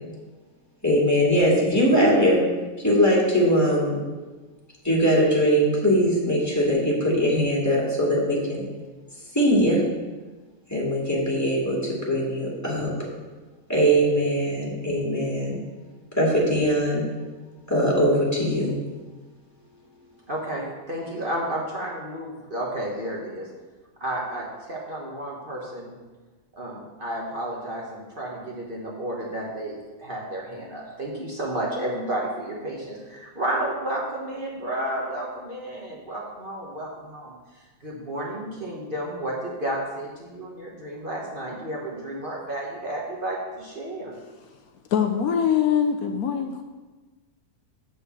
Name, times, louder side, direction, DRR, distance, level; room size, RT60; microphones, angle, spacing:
voice 1, 0.8-2.4 2.8-4.0 4.8-8.6 9.3-9.8 10.7-12.9 13.7-15.6 16.2-17.0 17.7-18.8, equal, 10° left, -5 dB, 2.3 m, -21 dB
voice 2, 20.3-23.5 24.0-25.9 26.6-37.3 37.8-44.1, right 1 dB, 35° right, -3 dB, 1.2 m, -32 dB
voice 3, 44.9-46.6, left 8 dB, 75° left, 5 dB, 1.1 m, -23 dB
8.0 x 4.4 x 7.0 m, 1.3 s
omnidirectional pair, 1.7 m